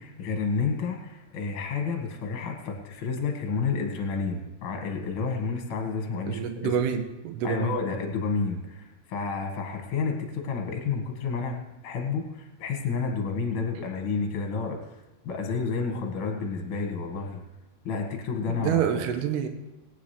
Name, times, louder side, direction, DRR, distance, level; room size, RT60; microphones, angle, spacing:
voice 1, 0.0-6.7 7.4-11.6 11.8-14.8 15.2-17.4 17.8-18.9, left 4 dB, 45° left, 3 dB, 1.9 m, -30 dB
voice 2, 6.3-7.8 18.5-19.5, right 8 dB, 80° right, 6 dB, 3.0 m, -27 dB
20.5 x 9.7 x 3.4 m, 1.0 s
omnidirectional pair, 4.7 m